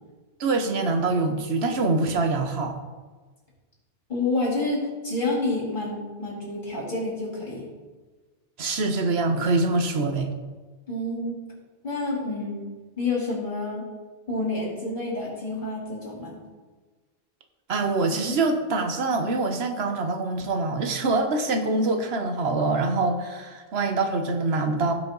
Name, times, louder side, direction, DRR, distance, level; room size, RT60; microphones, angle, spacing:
voice 1, 0.4-2.8 8.6-10.3 17.7-24.9, right 3 dB, 90° right, 6 dB, 1.3 m, -24 dB
voice 2, 4.1-7.6 10.9-11.4 11.8-12.7 13.0-13.8 14.3-16.4, left 2 dB, 50° left, -5 dB, 3.7 m, -28 dB
16.5 x 5.7 x 3.9 m, 1.3 s
omnidirectional pair, 1.0 m